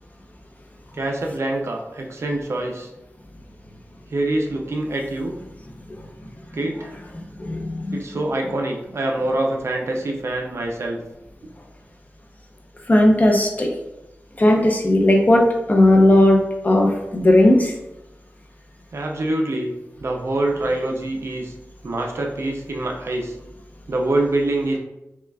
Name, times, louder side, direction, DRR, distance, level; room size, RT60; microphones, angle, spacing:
voice 1, 0.9-2.9 4.1-5.4 6.5-7.0 7.9-11.0 18.9-19.7 20.0-21.5 21.8-23.3 23.9-24.8, right 2 dB, 65° right, 1 dB, 0.5 m, -25 dB
voice 2, 7.4-8.0 12.9-13.7 14.4-17.7, left 1 dB, 35° left, 1 dB, 0.6 m, -16 dB
5.7 x 2.3 x 2.3 m, 0.94 s
wide cardioid pair, 105°, 5 cm